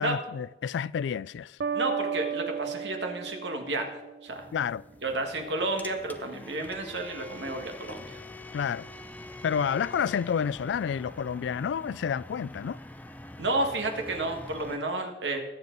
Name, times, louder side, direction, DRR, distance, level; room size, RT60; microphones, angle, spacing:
voice 1, 0.0-1.6 4.5-4.8 8.5-8.9 9.4-12.8, left 7 dB, 85° left, 0.3 m, -29 dB
sound 1, 1.6-4.4, right 7 dB, 70° right, 0.5 m, -34 dB
voice 2, 1.7-4.5 5.0-8.2 13.4-15.4, right 2 dB, 85° right, 1.8 m, -31 dB
sound 2, 4.3-14.8, left 1 dB, 10° left, 0.5 m, -45 dB
21.0 x 7.3 x 3.9 m
head